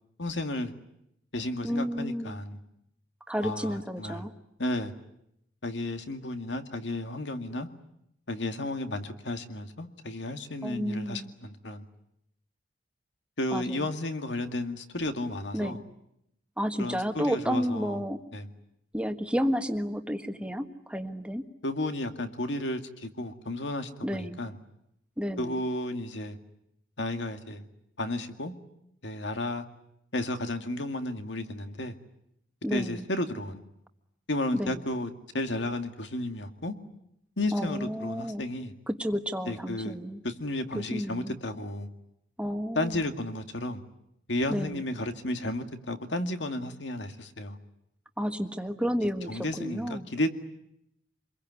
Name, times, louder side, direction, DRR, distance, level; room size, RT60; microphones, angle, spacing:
voice 1, 0.2-0.7 1.3-2.6 3.4-4.3 4.6-4.9 5.6-7.7 8.3-11.9 13.4-15.8 16.8-18.0 18.3-18.5 21.6-24.6 25.4-26.4 27.0-27.7 28.0-28.5 29.0-29.7 30.1-32.0 32.7-33.6 34.3-36.7 37.4-38.7 39.5-40.0 40.2-41.9 42.8-43.8 44.3-47.6 49.3-50.3, left 1 dB, 70° left, 2.2 m, -33 dB
voice 2, 1.6-2.4 3.3-4.3 10.6-11.3 13.5-13.9 15.5-15.8 16.6-18.2 18.9-21.4 24.0-24.4 25.2-25.6 32.6-33.0 34.5-34.8 37.5-38.4 38.9-40.2 40.7-41.4 42.4-43.0 44.5-44.8 48.2-50.1, equal, 5° right, 1.5 m, -31 dB
27.0 x 22.0 x 9.7 m
head